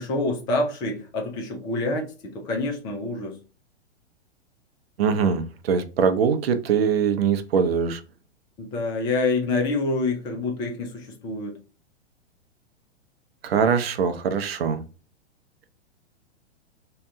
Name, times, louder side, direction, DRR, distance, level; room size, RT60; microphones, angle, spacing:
voice 1, 0.0-2.1 2.3-3.4 8.6-11.5, left 2 dB, 15° left, 2 dB, 0.3 m, -26 dB
voice 2, 5.0-8.0 13.4-14.8, right 6 dB, 60° right, 9 dB, 0.6 m, -22 dB
2.8 x 2.2 x 3.5 m, 0.35 s
figure-of-eight pair, 105°, 35 cm